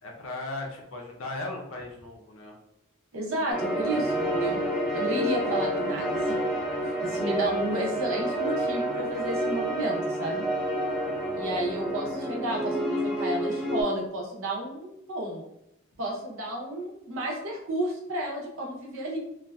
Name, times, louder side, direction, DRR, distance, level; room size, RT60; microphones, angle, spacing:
voice 1, 0.0-2.5 11.0-11.5, left 2 dB, 70° left, 0 dB, 0.6 m, -37 dB
voice 2, 3.1-4.6 4.9-6.4 6.8-10.4 11.3-15.4 16.0-19.2, right 1 dB, 70° right, -2 dB, 0.6 m, -32 dB
sound 1, 3.5-13.8, right 1 dB, 5° right, 0.5 m, -29 dB
2.6 x 2.3 x 2.2 m, 0.82 s
head